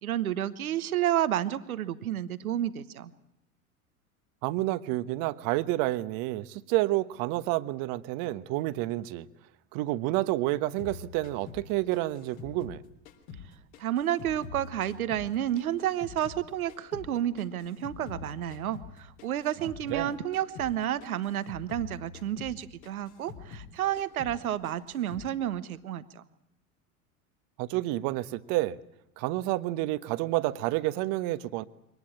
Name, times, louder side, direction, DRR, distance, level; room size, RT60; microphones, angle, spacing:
voice 1, 0.0-3.1 13.8-26.2, right 11 dB, 75° right, 1.3 m, -31 dB
voice 2, 4.4-9.3 9.7-12.8 19.9-20.1 27.6-28.8 29.2-31.6, right 17 dB, 50° right, 1.2 m, -29 dB
sound 1, 10.8-13.5 13.7-16.4 16.7-20.1 20.3-20.7 21.0-23.7 24.0-24.4 24.6-25.3, left 6 dB, 65° left, 3.8 m, -45 dB
23.5 x 19.0 x 8.8 m
figure-of-eight pair, 80°, 43 cm